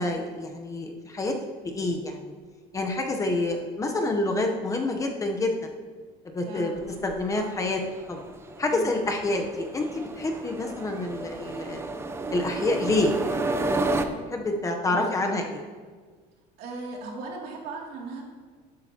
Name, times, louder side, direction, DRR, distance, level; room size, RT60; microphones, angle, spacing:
voice 1, 0.0-1.3 1.7-2.3 2.7-5.7 6.2-6.7 7.0-7.8 8.1-8.2 8.6-11.9 12.3-13.4 14.3-15.6, left 2 dB, 20° left, 3 dB, 0.8 m, -27 dB
voice 2, 6.4-6.8 8.7-8.9 14.8-15.1 16.6-18.2, right 3 dB, 70° right, -1 dB, 2.7 m, -37 dB
sound 1, 6.8-14.1, right 2 dB, 15° right, 0.5 m, -32 dB
11.5 x 11.0 x 2.9 m, 1.5 s
cardioid pair, 155°, 17 cm